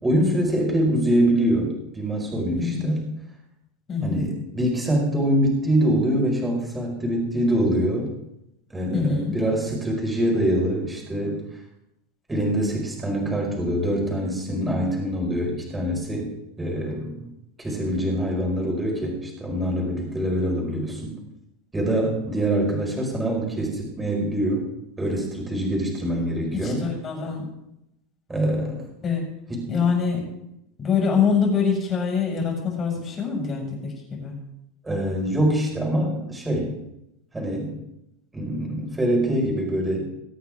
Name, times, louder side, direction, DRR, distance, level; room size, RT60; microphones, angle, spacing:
voice 1, 0.0-3.0 4.0-8.1 8.7-11.4 12.3-16.3 16.6-17.3 17.6-21.1 21.7-24.6 25.0-26.8 28.3-28.8 29.5-29.8 34.8-36.7 37.3-37.8 38.3-40.1, right 1 dB, 10° right, -1 dB, 5.1 m, -24 dB
voice 2, 8.9-9.4 26.5-27.5 29.0-29.2 29.7-30.2 30.8-34.4, left 6 dB, 25° left, -1 dB, 6.2 m, -24 dB
23.5 x 8.8 x 3.7 m, 0.86 s
supercardioid pair, 135°, 0 cm